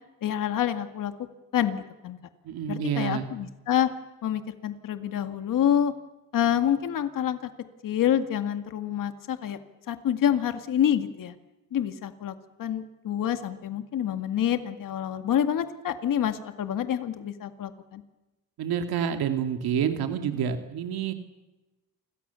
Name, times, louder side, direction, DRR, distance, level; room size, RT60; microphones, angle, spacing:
voice 1, 0.2-1.1 1.5-2.2 2.7-3.9 4.2-5.9 6.3-7.4 7.8-9.6 9.9-11.4 11.7-18.0, left 10 dB, 60° left, 8 dB, 2.1 m, -27 dB
voice 2, 2.4-3.3 18.6-21.1, right 8 dB, 90° right, 6 dB, 2.4 m, -28 dB
30.0 x 26.5 x 7.0 m, 1.1 s
cardioid pair, 150°, 36 cm